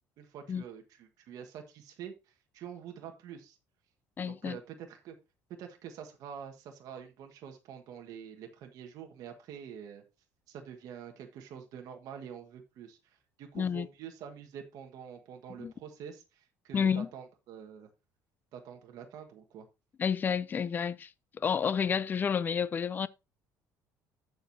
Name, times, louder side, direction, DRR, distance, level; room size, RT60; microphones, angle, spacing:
voice 1, 0.2-2.1 2.5-3.6 4.3-5.2 5.6-10.0 10.5-13.0 13.4-17.9 18.5-19.7, right 8 dB, 65° right, 1.4 m, -46 dB
voice 2, 4.2-4.6 13.5-13.9 15.6-15.7 16.7-17.1 20.0-21.1 21.4-23.1, left 7 dB, 30° left, 0.4 m, -30 dB
14.0 x 4.8 x 2.7 m
cardioid pair, 135°, 7 cm